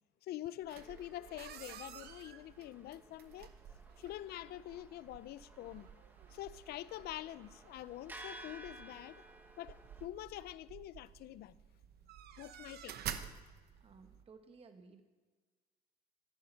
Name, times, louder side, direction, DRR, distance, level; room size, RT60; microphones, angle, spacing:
voice 1, 0.2-3.5 4.0-5.9 6.3-9.2 9.6-11.6 12.4-12.9, left 14 dB, 70° left, 0.5 m, -46 dB
sound 1, 0.6-14.2, right 9 dB, 70° right, 1.0 m, -51 dB
sound 2, 0.7-10.1, right 1 dB, 10° right, 1.4 m, -57 dB
voice 2, 13.8-15.0, right 4 dB, 35° right, 1.2 m, -58 dB
13.5 x 11.0 x 5.5 m
cardioid pair, 110°, 17 cm